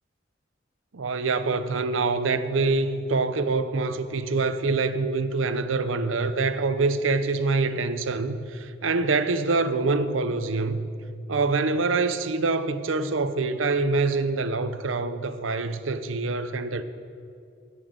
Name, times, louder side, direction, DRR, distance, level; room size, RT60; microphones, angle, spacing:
voice 1, 0.9-10.9 11.3-16.8, right 3 dB, 80° right, 0.7 m, -25 dB
11.0 x 8.3 x 8.0 m
head